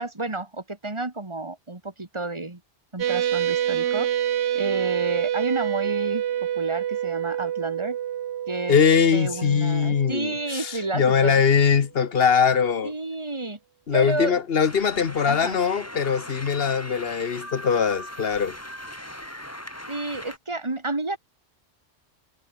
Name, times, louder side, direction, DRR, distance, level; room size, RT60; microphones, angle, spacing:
voice 1, 0.0-2.6 2.9-4.1 4.5-6.2 6.6-8.0 8.5-8.8 9.1-11.4 12.8-13.6 13.9-14.4 15.3-15.6 19.9-21.2, right 2 dB, 25° right, 2.1 m, -30 dB
sound 1, 3.0-11.1, right 10 dB, 80° right, 1.0 m, -27 dB
voice 2, 8.7-12.9 13.9-18.6, left 6 dB, 60° left, 1.3 m, -21 dB
sound 2, 14.6-20.4, left 1 dB, 15° left, 3.8 m, -39 dB
omnidirectional pair, 1.1 m